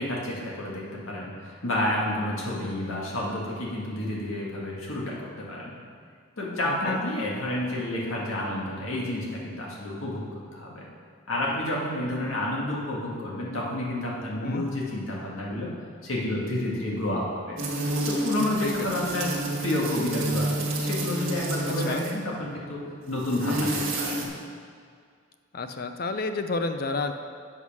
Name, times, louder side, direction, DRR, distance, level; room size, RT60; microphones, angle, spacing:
voice 1, 0.0-5.8 6.4-10.2 10.5-10.8 11.3-15.7 16.0-17.6 18.1-19.3 19.6-24.3, left 1 dB, 90° left, -4 dB, 1.9 m, -30 dB
voice 2, 6.6-7.0 14.4-14.6 18.6-18.9 21.7-22.0 25.5-27.1, left 3 dB, 45° left, 8 dB, 0.5 m, -30 dB
sound 1, 17.6-22.2 23.1-24.3, right 2 dB, 80° right, 1.5 m, -29 dB
7.9 x 5.5 x 6.2 m, 2.1 s
head